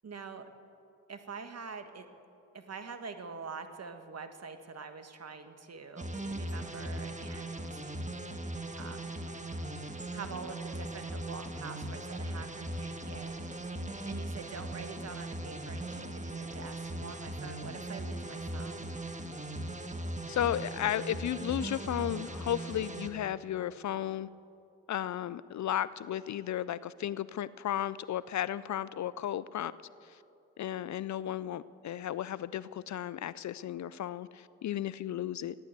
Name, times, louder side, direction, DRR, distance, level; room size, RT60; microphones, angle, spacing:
voice 1, 0.0-0.5 1.1-2.1 2.5-8.0 8.8-9.2 10.1-13.6 14.0-18.9, right 5 dB, 45° right, 8 dB, 1.5 m, -45 dB
sound 1, 6.0-23.1, right 1 dB, 20° right, 1.6 m, -39 dB
voice 2, 20.3-24.3 24.9-29.7 30.1-30.2 30.6-35.6, left 11 dB, 55° left, 18 dB, 0.5 m, -34 dB
15.0 x 10.5 x 8.1 m, 2.7 s
hypercardioid pair, 45°, 35 cm